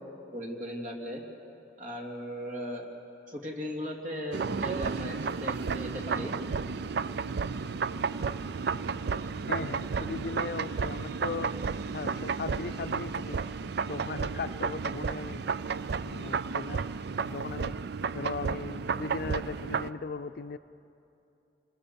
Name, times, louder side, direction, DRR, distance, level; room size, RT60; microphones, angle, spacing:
voice 1, 0.3-1.2 1.8-2.9 3.3-6.3, equal, 45° right, 0 dB, 3.0 m, -37 dB
sound 1, 4.3-19.9, right 5 dB, 65° right, 0.5 m, -32 dB
voice 2, 9.5-11.5 11.9-13.4 13.9-15.4 16.0-16.8 17.2-17.8 18.1-20.6, left 4 dB, 55° left, 12 dB, 0.5 m, -38 dB
26.5 x 20.5 x 7.0 m, 2.7 s
head